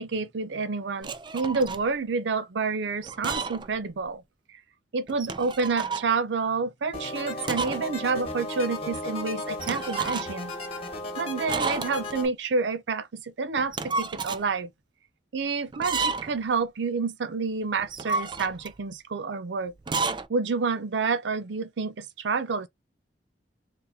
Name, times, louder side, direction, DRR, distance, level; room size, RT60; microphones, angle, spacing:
voice 1, 0.0-4.2 4.5-4.6 4.9-10.5 11.2-14.7 15.3-19.7 20.3-22.7, right 4 dB, 85° right, 0.5 m, -29 dB
sound 1, 1.0-1.9 3.0-3.7 4.0-4.1 5.1-6.1 7.4-7.9 8.2-8.3 9.6-10.5 11.5-12.2 13.6-14.5 15.7-16.4 17.8-18.8 19.8-20.3, right 4 dB, 25° right, 0.4 m, -31 dB
sound 2, 6.9-12.3, left 1 dB, 35° left, 1.4 m, -35 dB
3.9 x 2.7 x 2.7 m
head